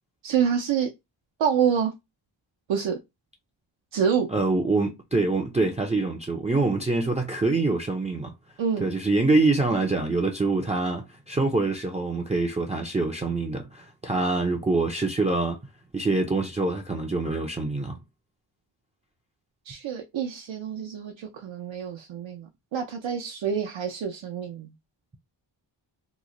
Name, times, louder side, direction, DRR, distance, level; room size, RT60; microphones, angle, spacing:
voice 1, 0.2-0.9 1.4-1.9 2.7-3.0 3.9-4.3 8.6-8.9 19.6-24.7, right 7 dB, 80° right, 0.7 m, -27 dB
voice 2, 4.3-8.3 8.8-15.6 15.9-18.0, right 3 dB, 15° right, 0.4 m, -25 dB
3.0 x 2.1 x 3.7 m
wide cardioid pair, 140°, 45 cm